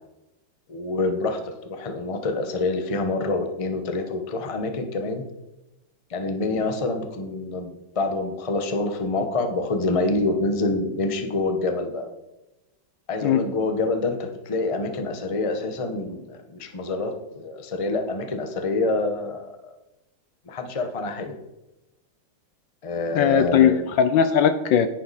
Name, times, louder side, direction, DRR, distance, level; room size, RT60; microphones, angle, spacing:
voice 1, 0.7-5.2 6.1-12.1 13.1-19.7 20.5-21.3 22.8-23.8, left 2 dB, 25° left, 6 dB, 0.8 m, -26 dB
voice 2, 23.1-24.9, left 8 dB, 70° left, 10 dB, 1.3 m, -19 dB
10.5 x 9.5 x 4.2 m, 0.96 s
omnidirectional pair, 2.3 m